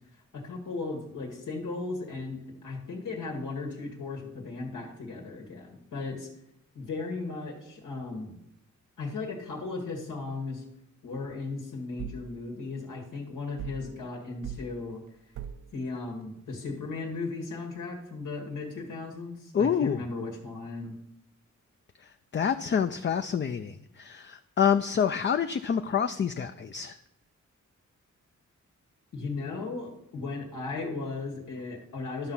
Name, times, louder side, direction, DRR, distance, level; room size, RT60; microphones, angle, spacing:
voice 1, 0.3-6.3 6.8-8.4 9.0-10.6 11.0-15.0 15.7-21.0 29.1-32.3, left 3 dB, 90° left, 0 dB, 2.0 m, -36 dB
sound 1, 12.0-12.3 13.6-13.9 14.4-14.7 15.3-15.7, right 8 dB, 70° right, 0.5 m, -39 dB
voice 2, 19.5-20.0 22.3-27.0, left 7 dB, 40° left, 9 dB, 0.4 m, -27 dB
12.0 x 5.8 x 5.6 m, 0.79 s
cardioid pair, 90°, 30 cm